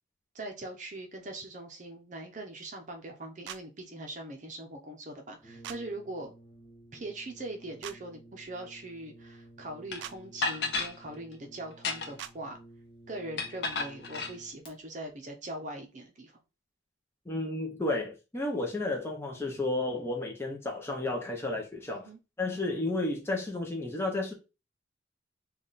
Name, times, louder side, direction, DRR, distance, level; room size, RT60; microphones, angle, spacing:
voice 1, 0.3-6.3 6.9-12.6 13.1-16.4 21.9-22.2, right 1 dB, 40° right, 0.6 m, -41 dB
sound 1, 3.5-3.6 5.6-5.8 7.8-8.0 10.0-10.2 12.2-12.3, right 10 dB, 80° right, 0.3 m, -41 dB
Brass instrument, 5.4-14.7, right 1 dB, 30° left, 1.0 m, -54 dB
sound 2, 9.9-10.0 10.4-10.9 11.7-12.3 13.4-14.3, left 4 dB, 65° left, 0.6 m, -32 dB
voice 2, 17.3-22.1 22.4-24.3, left 2 dB, 15° left, 0.6 m, -32 dB
3.4 x 2.3 x 4.0 m
head